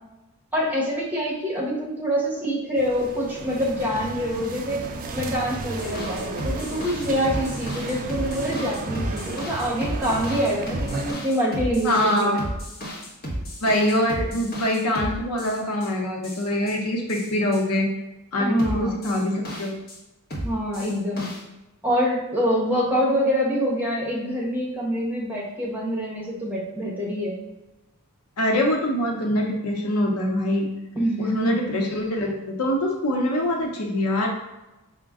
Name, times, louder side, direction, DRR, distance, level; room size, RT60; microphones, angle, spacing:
voice 1, 0.5-4.9 5.1-11.9 12.2-12.3 18.4-19.0 20.4-21.3 21.8-27.4 30.9-31.6, equal, 10° right, -5 dB, 1.1 m, -25 dB
sound 1, 2.8-11.1, right 3 dB, 40° right, 0.4 m, -34 dB
sound 2, 5.8-15.9 16.2-16.8 17.1-17.6 18.6-20.0 20.3-21.4, equal, 45° left, 1.0 m, -33 dB
voice 2, 11.8-12.4 13.6-17.9 18.3-19.8 28.4-30.7 31.2-34.3, left 1 dB, 80° left, 1 dB, 0.8 m, -24 dB
5.0 x 2.2 x 3.6 m, 1.0 s
head